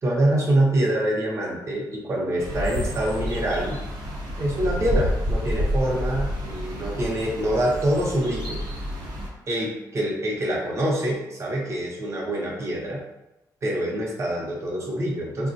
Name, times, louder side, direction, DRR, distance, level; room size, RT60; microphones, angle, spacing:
voice 1, 0.0-3.8 4.4-8.6 9.5-13.0 13.6-15.5, right 1 dB, 40° right, -2 dB, 0.7 m, -25 dB
sound 1, 2.4-9.3, equal, 90° right, 0.8 m, -29 dB
3.6 x 2.2 x 2.6 m, 0.97 s
wide cardioid pair, 150°, 7 cm